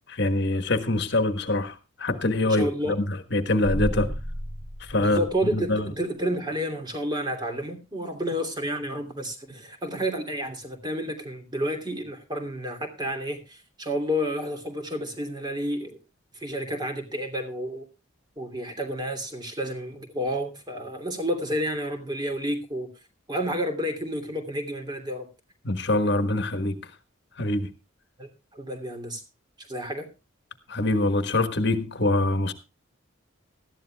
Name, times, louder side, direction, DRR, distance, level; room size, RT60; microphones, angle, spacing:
voice 1, 0.1-4.1 4.8-5.2 5.5-5.9 25.6-26.7 27.4-27.7 30.7-32.5, left 2 dB, 55° left, 1.4 m, -24 dB
voice 2, 2.4-3.0 3.9-4.1 4.9-16.0 16.3-17.8 18.4-22.9 23.3-25.3 28.2-29.2 29.7-30.1, equal, 20° right, 2.9 m, -30 dB
sound 1, 3.6-5.9, equal, 60° right, 5.5 m, -33 dB
19.5 x 13.5 x 2.3 m
head